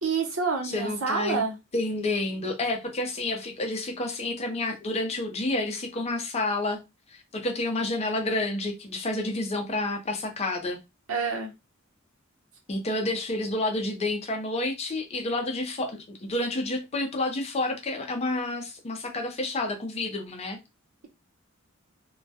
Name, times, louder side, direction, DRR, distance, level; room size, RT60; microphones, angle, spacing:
voice 1, 0.0-1.5 11.1-11.5, right 4 dB, 85° right, 0.8 m, -27 dB
voice 2, 0.7-1.4 1.7-6.8 7.1-10.8 12.7-20.6, left 2 dB, 30° left, 0.5 m, -29 dB
2.2 x 2.1 x 2.7 m
head